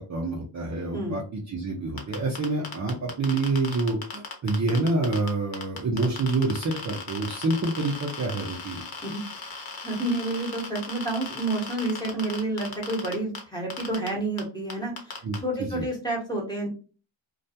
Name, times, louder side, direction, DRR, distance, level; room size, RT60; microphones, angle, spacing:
voice 1, 0.1-8.8 15.2-15.8, right 2 dB, 40° right, -1 dB, 0.6 m, -27 dB
sound 1, 2.0-5.3 5.5-13.4 13.7-14.1 14.4-14.5 14.7-15.4, left 5 dB, 50° left, 0.9 m, -36 dB
voice 2, 9.8-16.7, right 2 dB, 10° left, -1 dB, 1.0 m, -29 dB
2.4 x 2.2 x 2.7 m, 0.37 s
cardioid pair, 95°, 47 cm